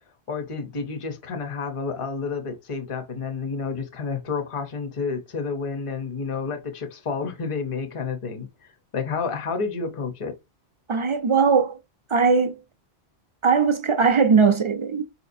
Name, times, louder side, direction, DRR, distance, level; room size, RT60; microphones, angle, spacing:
voice 1, 0.3-10.4, left 5 dB, 35° left, 0.8 m, -30 dB
voice 2, 10.9-11.8 12.1-12.6 13.4-15.0, right 5 dB, 40° right, 0.4 m, -19 dB
4.7 x 2.9 x 2.6 m
omnidirectional pair, 1.1 m